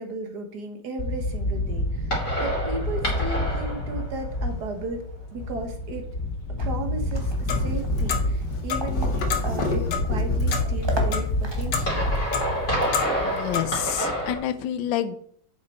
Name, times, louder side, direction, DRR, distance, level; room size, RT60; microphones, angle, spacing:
voice 1, 0.0-6.1 6.6-12.1, right 2 dB, 65° right, 6 dB, 1.9 m, -35 dB
sound 1, 1.0-14.4, left 1 dB, 40° left, 3.4 m, -27 dB
sound 2, 6.6-12.7, equal, 15° right, 1.3 m, -38 dB
Clock, 7.2-13.7, left 5 dB, 65° left, 1.7 m, -31 dB
voice 2, 13.2-15.2, left 11 dB, 90° left, 11 dB, 1.4 m, -28 dB
8.5 x 6.9 x 4.3 m, 0.63 s
omnidirectional pair, 2.0 m